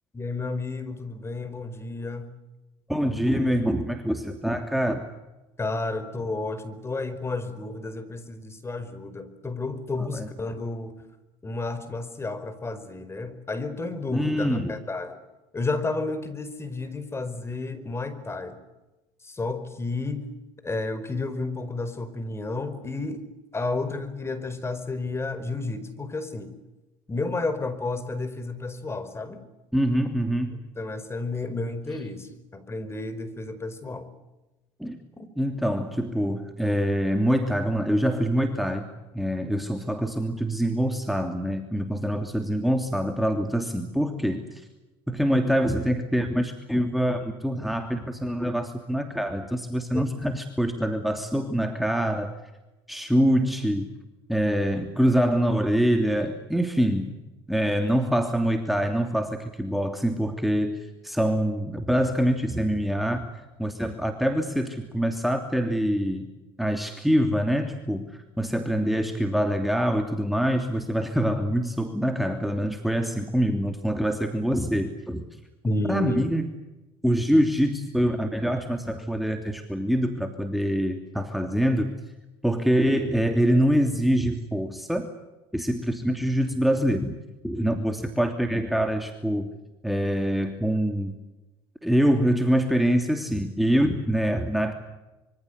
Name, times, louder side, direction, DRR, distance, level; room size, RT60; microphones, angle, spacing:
voice 1, 0.1-2.3 5.6-10.9 11.4-15.2 15.5-18.6 19.2-20.2 20.6-23.2 23.5-26.5 27.1-29.4 30.7-34.1 35.2-35.3 49.9-50.0 75.6-76.2, left 3 dB, 20° left, 11 dB, 4.9 m, -31 dB
voice 2, 2.9-5.0 10.1-10.3 14.1-14.7 29.7-30.6 34.8-35.0 35.4-38.9 39.1-44.7 45.1-52.4 52.9-53.9 54.3-57.2 57.5-63.3 63.6-66.3 66.6-75.2 75.9-76.5 77.0-81.9 82.4-85.1 85.5-87.2 87.4-89.5 89.8-91.1 91.8-94.7, equal, ahead, 5 dB, 3.0 m, -25 dB
25.5 x 24.5 x 8.2 m, 1.0 s
supercardioid pair, 80°, 12 cm